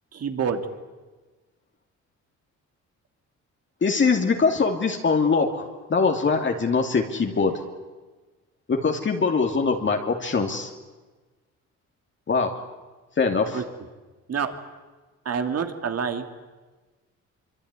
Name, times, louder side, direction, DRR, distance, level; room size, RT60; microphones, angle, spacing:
voice 1, 0.1-0.6 13.5-13.6 14.3-14.5 15.2-16.3, right 6 dB, 55° right, 7 dB, 3.0 m, -27 dB
voice 2, 3.8-5.6 5.9-7.6 8.7-10.7 12.3-12.5 13.2-13.6, left 4 dB, 40° left, 3 dB, 2.7 m, -22 dB
24.5 x 24.5 x 9.8 m, 1.3 s
cardioid pair, 90°, 30 cm